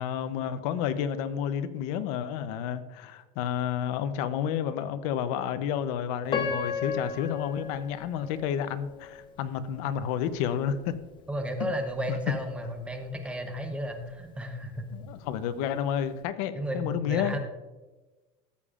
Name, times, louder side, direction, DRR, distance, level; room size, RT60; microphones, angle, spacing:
voice 1, 0.0-10.9 11.6-11.7 12.1-12.2 14.9-17.3, left 9 dB, 70° left, 12 dB, 0.7 m, -30 dB
Piano, 6.3-9.3 9.9-10.0 10.6-10.9, left 6 dB, 25° left, 0.8 m, -34 dB
voice 2, 11.3-14.8 16.5-17.4, equal, 5° right, 5 dB, 0.8 m, -33 dB
13.5 x 8.3 x 2.5 m, 1.2 s
cardioid pair, 170°, 20 cm